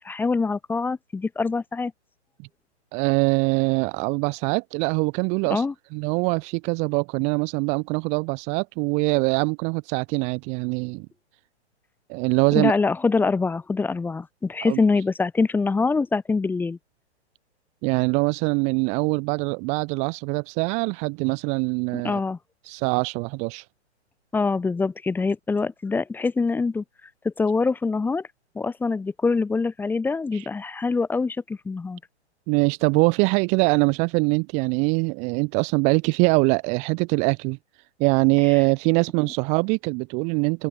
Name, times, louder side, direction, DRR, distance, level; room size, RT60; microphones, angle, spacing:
voice 1, 0.0-1.9 5.5-5.7 12.5-16.8 22.0-22.4 24.3-26.8 27.2-28.2 28.5-32.0, left 4 dB, 5° left, 1.1 m, -24 dB
voice 2, 2.9-5.7 5.9-11.1 12.1-12.7 14.6-14.8 17.8-22.2 22.6-23.7 30.3-30.5 32.5-37.6 38.0-40.7, right 33 dB, 20° right, 0.6 m, -23 dB
open air
hypercardioid pair, 145°, 34 cm